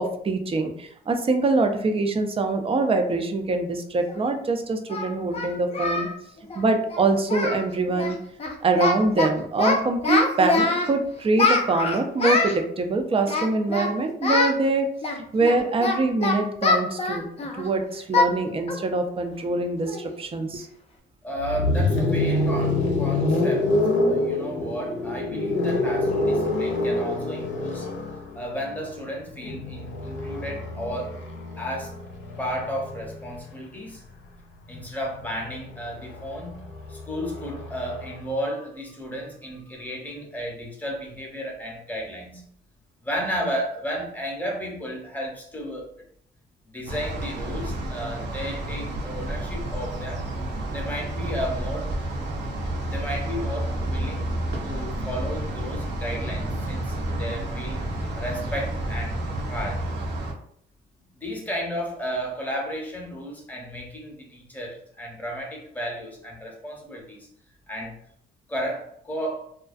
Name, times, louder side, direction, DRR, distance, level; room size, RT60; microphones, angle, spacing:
voice 1, 0.0-6.1 6.6-8.2 8.6-14.9 15.2-17.3 17.6-20.7, right 3 dB, 30° right, 5 dB, 0.4 m, -24 dB
Singing, 4.1-4.2 4.9-6.1 6.4-6.6 6.9-7.0 7.3-7.6 7.9-8.1 8.4-9.3 9.6-10.9 11.4-12.6 13.2-13.9 14.2-14.5 15.0-17.7 18.1-18.3 18.7-18.9 19.3-19.4 19.9-20.1, left 3 dB, 30° left, 0.4 m, -24 dB
voice 2, 21.2-23.7 24.1-27.9 28.3-31.2 31.6-31.9 32.4-34.0 34.7-42.4 43.0-45.9 46.7-50.3 50.7-51.9 52.8-57.9 58.2-59.9 61.2-67.2 67.7-68.0 68.5-69.5, equal, 10° left, -1 dB, 0.8 m, -33 dB
sound 1, 21.4-33.3 34.6-38.2, left 2 dB, 70° left, 0.6 m, -27 dB
sound 2, 46.9-60.3, right 1 dB, 60° right, 0.7 m, -30 dB
2.4 x 2.2 x 2.4 m, 0.66 s
cardioid pair, 90°, 20 cm